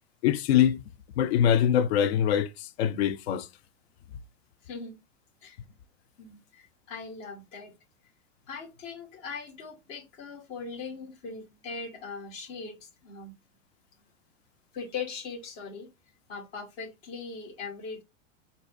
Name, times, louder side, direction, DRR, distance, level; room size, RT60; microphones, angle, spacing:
voice 1, 0.2-0.8 1.2-3.5, left 9 dB, 55° left, 0.5 m, -23 dB
voice 2, 4.6-5.0 5.4-5.6 6.2-7.7 8.5-13.3 14.7-15.9 16.3-18.0, left 5 dB, 35° left, 1.0 m, -40 dB
3.9 x 2.7 x 2.2 m
figure-of-eight pair, 90°, 38 cm